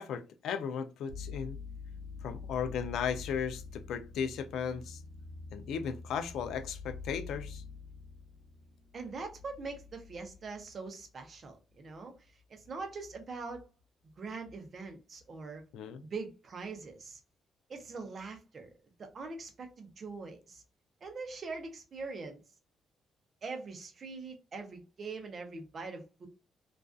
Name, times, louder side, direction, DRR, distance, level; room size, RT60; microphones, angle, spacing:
voice 1, 0.0-1.6 2.2-5.0 5.5-7.6 15.7-16.0, left 7 dB, 80° left, 0.3 m, -36 dB
sound 1, 1.1-10.7, left 5 dB, 85° right, 0.5 m, -46 dB
voice 2, 8.9-12.2 12.5-13.6 14.2-15.6 16.0-17.2 17.7-18.7 19.0-20.6 21.0-22.4 23.4-26.3, right 4 dB, 35° right, 0.5 m, -42 dB
2.4 x 2.3 x 2.3 m
cardioid pair, 160°, 0 cm